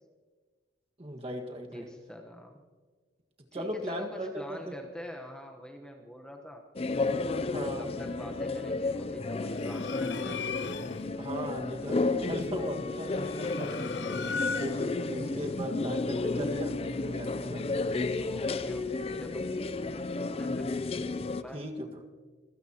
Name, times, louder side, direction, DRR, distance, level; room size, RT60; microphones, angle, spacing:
voice 1, 1.0-1.9 3.5-4.7 7.5-7.9 11.2-13.7 14.0-14.2 14.6-17.6 21.5-21.9, equal, 30° right, 2 dB, 1.7 m, -38 dB
voice 2, 1.7-2.6 3.5-6.7 7.6-10.5 18.2-19.5 20.1-20.7 21.3-21.6, equal, 5° left, 2 dB, 1.1 m, -45 dB
sound 1, 6.8-21.4, left 3 dB, 30° left, 0.5 m, -32 dB
sound 2, 9.5-11.1 13.0-15.0, left 5 dB, 65° left, 0.7 m, -37 dB
25.0 x 16.0 x 3.0 m, 1.5 s
head